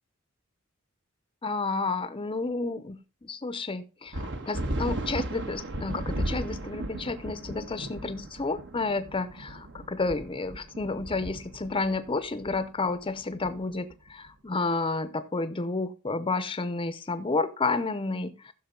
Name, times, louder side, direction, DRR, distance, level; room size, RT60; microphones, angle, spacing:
voice 1, 1.4-18.5, left 3 dB, 25° left, 13 dB, 0.6 m, -31 dB
sound 1, 4.1-14.1, right 1 dB, 60° right, 1.3 m, -36 dB
14.5 x 6.3 x 3.7 m, 0.33 s
head